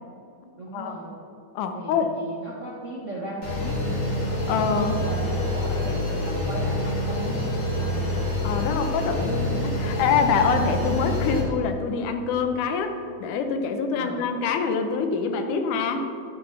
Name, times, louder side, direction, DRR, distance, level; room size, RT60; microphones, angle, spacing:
voice 1, 0.6-1.1 1.7-4.0 4.5-8.2 13.9-14.3, right 2 dB, 55° right, -5 dB, 0.8 m, -36 dB
voice 2, 1.6-2.1 4.5-5.0 8.4-16.1, left 5 dB, 90° left, 6 dB, 2.3 m, -25 dB
sound 1, 3.4-11.4, left 1 dB, 50° left, 3.4 m, -27 dB
11.5 x 10.5 x 3.3 m, 2.7 s
omnidirectional pair, 3.5 m